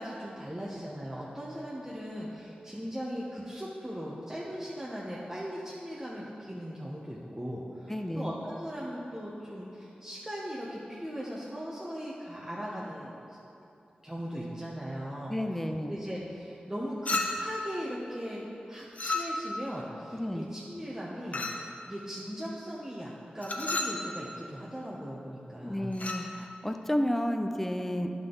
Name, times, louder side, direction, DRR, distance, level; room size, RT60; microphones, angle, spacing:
voice 1, 0.0-13.4 14.0-15.3 15.9-26.0, equal, 15° right, -6 dB, 1.0 m, -39 dB
voice 2, 7.9-8.3 15.3-15.9 20.1-20.5 25.6-28.1, equal, 10° left, 6 dB, 0.6 m, -31 dB
Chink clink, 17.1-17.6 19.0-19.6 21.3-21.7 23.4-24.0 25.9-26.3, left 2 dB, 55° left, 0.8 m, -32 dB
10.0 x 5.8 x 3.9 m, 2.7 s
cardioid pair, 55°, 3 cm